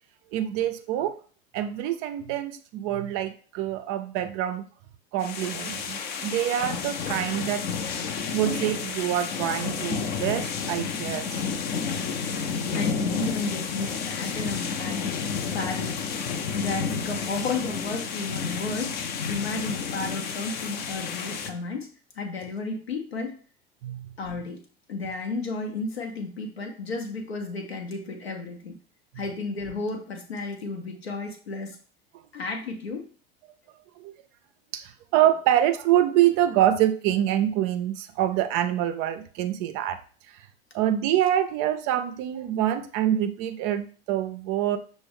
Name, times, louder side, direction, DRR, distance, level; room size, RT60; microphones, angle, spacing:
voice 1, 0.3-1.2 1.5-4.7 5.1-7.7 8.3-11.4 23.8-24.1 34.0-34.1 34.7-40.0 40.3-40.5 40.7-44.8, right 12 dB, 40° right, 10 dB, 0.4 m, -25 dB
sound 1, 5.2-21.5, left 5 dB, 35° left, 0.5 m, -31 dB
voice 2, 12.8-21.9 22.1-23.4 24.2-24.6 24.9-28.8 29.2-31.8 32.3-33.1, left 3 dB, 85° left, 2 dB, 0.6 m, -33 dB
5.9 x 2.0 x 3.4 m, 0.41 s
figure-of-eight pair, 75°, 30 cm